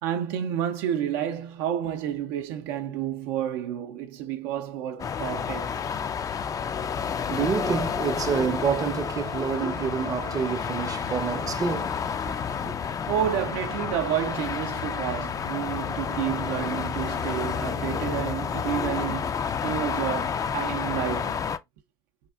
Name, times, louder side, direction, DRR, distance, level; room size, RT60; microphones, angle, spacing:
voice 1, 0.0-5.8 12.8-19.4 19.6-21.4, right 10 dB, 80° right, 0.5 m, -30 dB
sound 1, 5.0-21.6, left 7 dB, 30° left, 0.3 m, -30 dB
voice 2, 7.0-12.8, right 6 dB, 30° right, 0.5 m, -28 dB
4.3 x 2.4 x 2.3 m
supercardioid pair, 80°, 12 cm